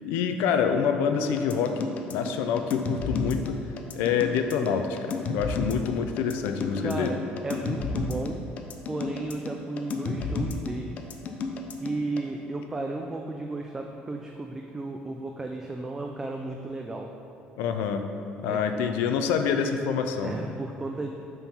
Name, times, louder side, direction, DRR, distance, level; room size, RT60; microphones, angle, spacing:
voice 1, 0.0-3.6 3.9-7.1 17.6-18.1 18.4-20.3, left 7 dB, 90° left, 7 dB, 0.5 m, -26 dB
sound 1, 1.4-12.2, left 4 dB, 45° left, 0.5 m, -32 dB
voice 2, 6.8-8.4 8.9-11.1 11.8-17.1 18.4-18.6 20.1-21.1, right 2 dB, 15° right, 2 dB, 0.3 m, -34 dB
5.5 x 4.5 x 5.6 m, 2.8 s
cardioid pair, 150°, 4 cm